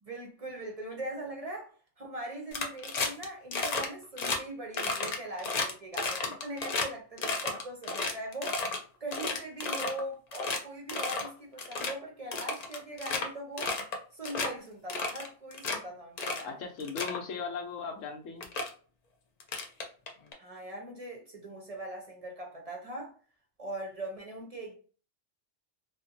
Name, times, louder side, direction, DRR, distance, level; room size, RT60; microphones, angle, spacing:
voice 1, 0.0-8.6 9.0-13.7 14.1-16.5 20.4-23.1 23.6-24.8, right 1 dB, 40° right, 0.5 m, -41 dB
sound 1, 2.5-3.2 3.5-3.9 4.2-4.4 4.7-6.9 7.2-8.8 9.1-10.0 10.3-10.6 10.9-11.3 11.6-11.9 12.3-13.3 13.6-14.0 14.2-14.5 14.9-15.8 16.2-16.5 16.8-17.2 18.0-18.1 18.4-18.7 19.4-20.3, left 3 dB, 60° left, 0.4 m, -32 dB
voice 2, 16.4-18.5, left 5 dB, 85° left, 1.1 m, -37 dB
2.7 x 2.4 x 2.6 m
omnidirectional pair, 1.3 m